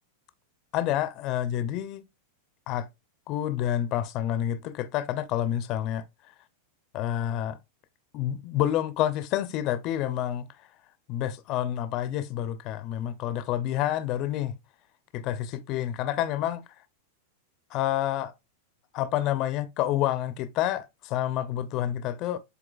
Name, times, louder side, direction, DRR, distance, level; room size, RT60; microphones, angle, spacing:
voice 1, 0.7-2.0 2.7-2.9 3.3-6.3 6.9-7.6 8.1-10.7 11.1-14.6 15.1-16.6 17.7-18.3 18.9-22.4, left 12 dB, 40° left, 0.5 m, -28 dB
7.8 x 2.8 x 2.3 m
supercardioid pair, 150°, 0 cm